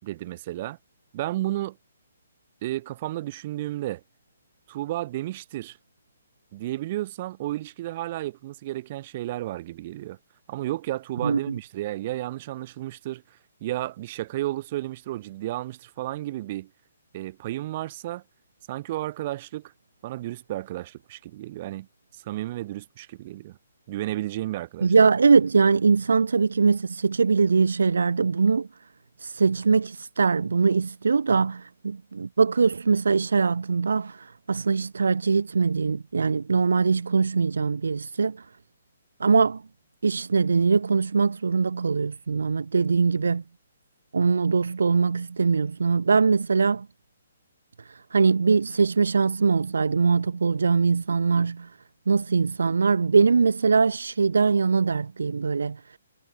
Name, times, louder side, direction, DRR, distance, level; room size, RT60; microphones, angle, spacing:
voice 1, 0.0-0.8 1.1-1.8 2.6-4.0 4.7-5.8 6.5-10.2 10.5-13.2 13.6-16.7 17.1-18.2 18.7-19.7 20.0-21.9 22.1-23.6 23.9-24.9, right 15 dB, 40° right, 4.7 m, -32 dB
voice 2, 24.8-28.7 29.2-38.4 39.2-39.6 40.0-43.4 44.1-46.9 48.1-51.7 52.1-55.8, right 5 dB, 85° right, 0.9 m, -22 dB
hypercardioid pair, 150°, 0 cm